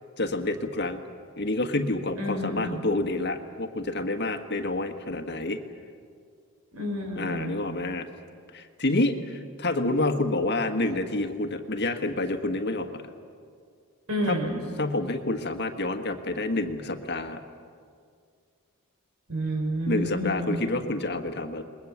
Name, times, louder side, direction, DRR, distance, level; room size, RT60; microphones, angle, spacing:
voice 1, 0.2-1.0 1.4-5.6 7.1-8.1 8.5-13.0 14.3-14.4 14.8-17.4 19.9-21.6, left 2 dB, 50° left, 6 dB, 1.5 m, -28 dB
voice 2, 2.2-2.9 6.7-7.6 14.1-14.6 19.3-20.6, equal, 70° right, 0 dB, 6.9 m, -29 dB
28.5 x 21.5 x 7.4 m, 2.2 s
head